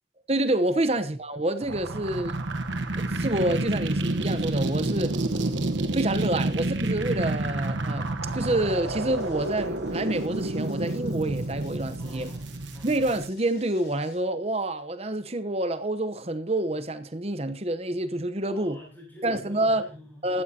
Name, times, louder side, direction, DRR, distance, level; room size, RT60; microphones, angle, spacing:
voice 1, 0.3-2.3 3.0-5.4 5.9-12.3 12.8-18.8 19.2-19.8 20.2-20.4, right 1 dB, 35° right, 0.9 m, -28 dB
sound 1, 1.6-13.3, right 2 dB, 85° right, 1.2 m, -29 dB
sound 2, 8.3-14.2, left 3 dB, 60° left, 4.1 m, -56 dB
voice 2, 12.0-12.9 18.5-20.3, equal, 10° left, 6.6 m, -48 dB
15.0 x 14.0 x 2.9 m
head